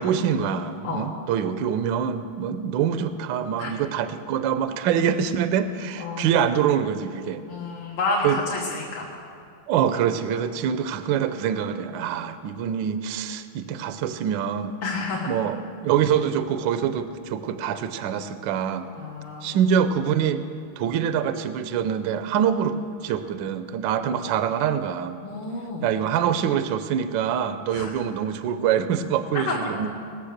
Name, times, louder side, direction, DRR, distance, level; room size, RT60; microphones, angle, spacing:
voice 1, 0.0-7.4 8.2-8.4 9.7-14.8 15.3-18.9 19.4-20.4 20.8-25.2 25.8-29.9, right 8 dB, 70° right, 11 dB, 1.2 m, -25 dB
voice 2, 6.0-6.3 7.5-9.1 14.8-15.3 18.9-19.6 24.1-24.2 25.2-25.9 27.7-27.9 29.3-29.9, left 3 dB, 85° left, -5 dB, 2.4 m, -30 dB
18.5 x 6.9 x 6.5 m, 2.3 s
omnidirectional pair, 2.4 m